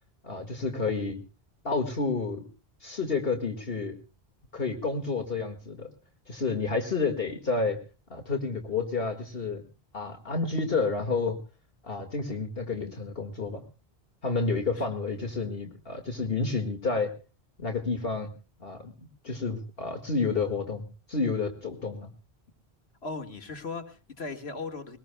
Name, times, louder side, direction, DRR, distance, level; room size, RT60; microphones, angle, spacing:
voice 1, 0.2-1.2 1.6-2.5 2.8-4.0 4.5-5.9 6.3-7.8 8.1-9.6 9.9-11.4 11.8-13.6 14.2-17.1 17.6-18.3 18.6-22.1, left 4 dB, 65° left, 3 dB, 2.1 m, -30 dB
voice 2, 23.0-25.0, left 3 dB, 85° left, 5 dB, 2.0 m, -37 dB
23.0 x 19.5 x 2.2 m, 0.34 s
omnidirectional pair, 1.0 m